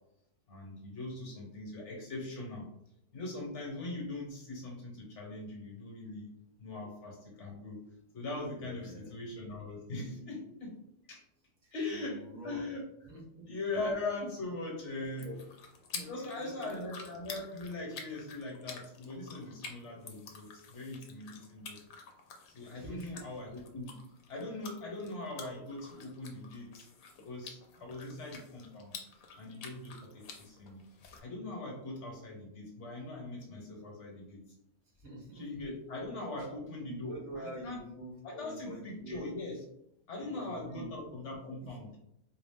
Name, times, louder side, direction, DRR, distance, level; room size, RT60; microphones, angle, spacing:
voice 1, 0.5-2.7 3.1-6.3 6.6-7.8 8.1-10.8 11.1-11.2 11.7-12.9 13.5-15.3 15.9-21.8 22.5-23.9 24.3-26.9 27.2-29.0 29.4-30.9 31.2-34.4 35.3-37.8 38.2-39.6 40.1-41.9, left 2 dB, 60° left, 0 dB, 1.3 m, -41 dB
voice 2, 8.6-9.1 11.6-12.6 13.0-13.4 15.2-15.4 16.0-16.9 22.7-23.2 35.0-35.4 36.9-39.3 40.3-40.9 41.3-41.4, right 1 dB, 80° right, -3 dB, 1.7 m, -46 dB
sound 1, 15.0-31.2, left 5 dB, 85° left, 1.1 m, -49 dB
4.4 x 2.4 x 3.5 m, 0.80 s
omnidirectional pair, 1.4 m